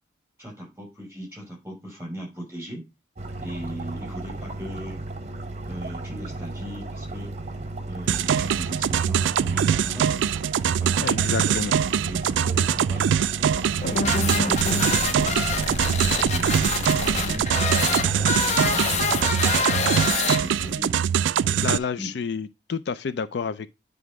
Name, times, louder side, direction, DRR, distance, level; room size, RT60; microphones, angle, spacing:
voice 1, 0.4-2.9 3.4-5.0 5.6-7.4 7.9-10.2 10.6-11.6 12.0-13.1 13.7-15.4 15.7-17.5 17.9-19.3 19.7-21.0 21.4-22.1, equal, 10° right, 5.5 m, -38 dB
sound 1, 3.2-19.7, right 2 dB, 35° right, 0.9 m, -35 dB
sound 2, 8.1-21.8, right 8 dB, 85° right, 0.3 m, -23 dB
voice 2, 11.0-11.7 21.6-23.7, left 5 dB, 65° left, 0.4 m, -29 dB
sound 3, 13.8-20.8, left 4 dB, 40° left, 0.7 m, -26 dB
9.5 x 3.4 x 4.7 m
head